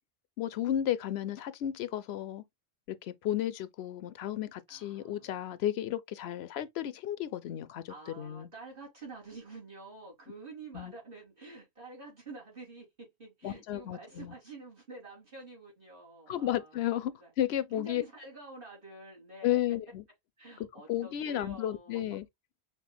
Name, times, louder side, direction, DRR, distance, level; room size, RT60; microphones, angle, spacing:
voice 1, 0.4-2.4 2.9-8.5 10.7-10.9 13.4-14.3 16.3-18.0 19.4-20.0 20.9-22.3, left 12 dB, 80° left, 0.8 m, -33 dB
voice 2, 4.7-5.4 7.9-17.3 17.7-19.6 20.4-22.0, right 3 dB, 55° right, 3.6 m, -48 dB
6.1 x 3.5 x 2.2 m
omnidirectional pair, 1.1 m